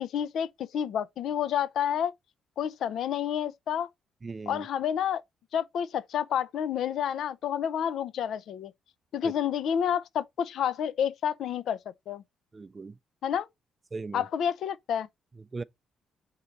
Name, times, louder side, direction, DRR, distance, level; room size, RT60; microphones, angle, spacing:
voice 1, 0.0-2.1 2.6-3.9 4.5-5.2 5.5-8.7 9.1-11.8 12.1-12.2 13.2-13.5 14.1-15.1, left 9 dB, 70° left, 0.4 m, -29 dB
voice 2, 4.2-4.7 9.2-9.3 12.5-12.9 13.9-14.2 15.5-15.6, right 4 dB, 30° right, 0.4 m, -38 dB
3.7 x 3.2 x 4.0 m
cardioid pair, 90°, 0 cm